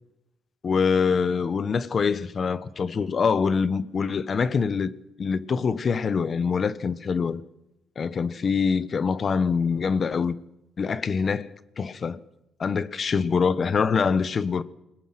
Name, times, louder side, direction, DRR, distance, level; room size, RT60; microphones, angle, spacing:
voice 1, 0.6-4.9 5.2-7.4 8.0-10.3 10.8-12.2 12.6-14.6, left 5 dB, 45° left, 1.3 m, -24 dB
27.0 x 20.5 x 6.1 m
cardioid pair, 90°, 0 cm